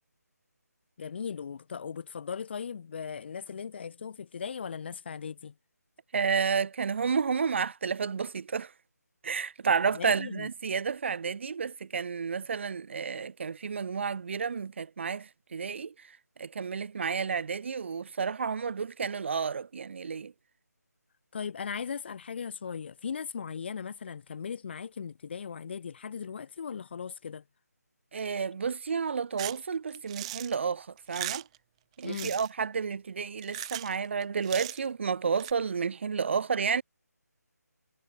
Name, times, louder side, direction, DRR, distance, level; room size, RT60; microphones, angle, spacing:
voice 1, 1.0-5.5 9.9-10.5 21.3-27.4 32.0-32.3, left 6 dB, 40° left, 2.4 m, -38 dB
voice 2, 6.1-8.7 9.2-15.9 16.4-20.3 28.1-31.4 32.0-36.8, right 6 dB, 45° right, 3.7 m, -31 dB
sound 1, 29.4-29.6 29.9-30.5 31.0-31.6 32.0-32.5 33.4-34.0 34.2-34.9 35.4-35.5, right 16 dB, 20° right, 7.4 m, -38 dB
figure-of-eight pair, 160°, 9 cm